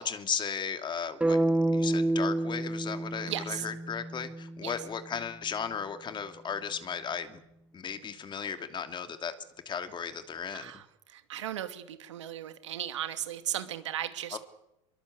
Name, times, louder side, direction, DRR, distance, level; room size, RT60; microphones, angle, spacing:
voice 1, 0.0-1.4 1.7-7.4 7.7-9.3 9.7-10.7 14.3-14.4, left 7 dB, 30° left, 9 dB, 2.8 m, -35 dB
sound 1, 1.2-5.3, right 1 dB, 10° right, 1.9 m, -29 dB
voice 2, 3.3-3.7 4.6-4.7 10.5-10.8 11.1-14.4, right 11 dB, 90° right, 10 dB, 2.6 m, -36 dB
24.5 x 22.5 x 8.3 m, 0.87 s
hypercardioid pair, 95°, 15 cm